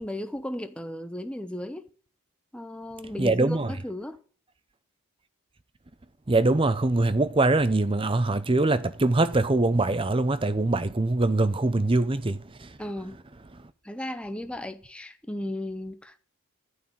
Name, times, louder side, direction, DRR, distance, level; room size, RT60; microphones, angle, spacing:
voice 1, 0.0-1.9 2.5-4.2 12.8-13.2 13.8-16.2, left 1 dB, 5° left, 0.8 m, -35 dB
voice 2, 3.2-3.7 6.3-12.4, right 2 dB, 25° right, 0.6 m, -23 dB
11.5 x 5.6 x 8.6 m
head